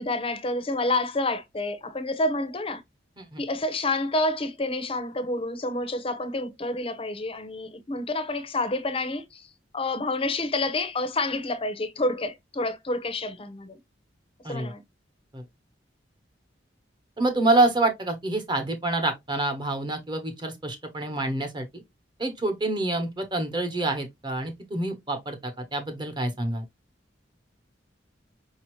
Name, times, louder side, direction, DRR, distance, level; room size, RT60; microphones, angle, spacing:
voice 1, 0.0-2.8 3.4-9.5 9.7-13.8 14.5-14.8, left 2 dB, 30° left, 0.7 m, -28 dB
voice 2, 17.2-21.8 22.2-26.6, right 2 dB, 25° right, 1.1 m, -27 dB
5.2 x 2.8 x 3.1 m
head